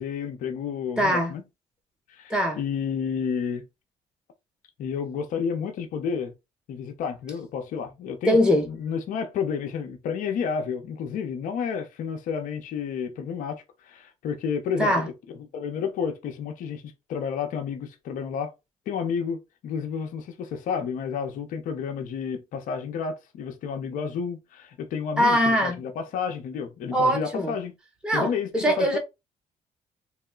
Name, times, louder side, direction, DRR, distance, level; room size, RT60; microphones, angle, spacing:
voice 1, 0.0-1.4 2.1-3.6 4.8-6.3 6.7-15.1 15.5-16.8 17.1-18.5 18.9-27.7 28.1-29.0, left 6 dB, 75° left, 0.7 m, -31 dB
voice 2, 1.0-1.3 2.3-2.6 8.2-8.7 14.8-15.1 25.2-25.8 26.9-27.5 28.0-29.0, equal, 5° right, 1.5 m, -22 dB
3.1 x 2.1 x 3.7 m
supercardioid pair, 65°, 14 cm